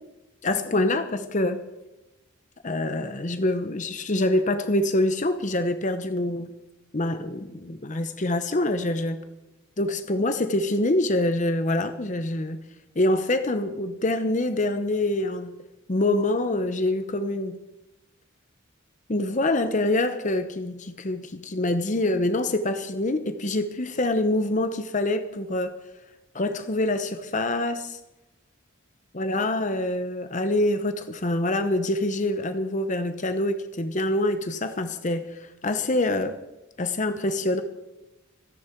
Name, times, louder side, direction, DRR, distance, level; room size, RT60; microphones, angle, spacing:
voice 1, 0.4-1.6 2.6-6.5 6.9-9.2 9.8-12.6 13.0-15.6 15.9-17.6 19.1-25.7 26.3-28.0 29.1-36.4 36.8-37.6, left 1 dB, 35° left, 9 dB, 0.8 m, -25 dB
26.0 x 10.5 x 4.6 m, 1.0 s
head